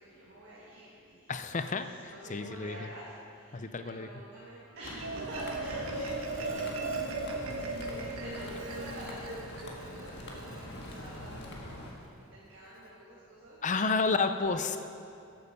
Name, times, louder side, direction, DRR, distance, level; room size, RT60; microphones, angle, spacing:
voice 1, 0.0-1.7 2.1-14.2, right 1 dB, 50° right, -7 dB, 2.0 m, -48 dB
voice 2, 1.3-2.9 3.5-4.1 13.6-14.8, left 4 dB, 35° left, 9 dB, 0.5 m, -31 dB
Marimba xylophone, 4.7-11.3, right 3 dB, 85° right, 1.2 m, -38 dB
sound 1, 4.8-11.9, left 1 dB, 50° left, 1.7 m, -44 dB
14.0 x 8.7 x 5.3 m, 2.6 s
head